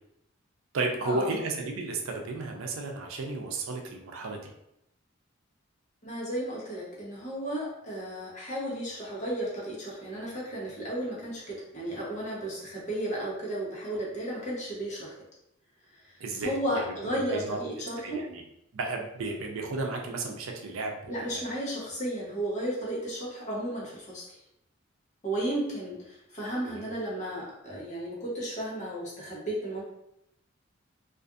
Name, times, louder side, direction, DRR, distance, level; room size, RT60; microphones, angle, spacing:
voice 1, 0.7-4.5 16.2-16.8 17.2-17.6 18.0-18.4 18.7-21.4 26.6-26.8, right 3 dB, 80° right, 2 dB, 0.4 m, -33 dB
voice 2, 6.0-15.1 16.4-18.2 21.1-24.4 25.2-29.8, right 1 dB, 35° left, -6 dB, 0.9 m, -34 dB
2.5 x 2.4 x 2.4 m, 0.82 s
head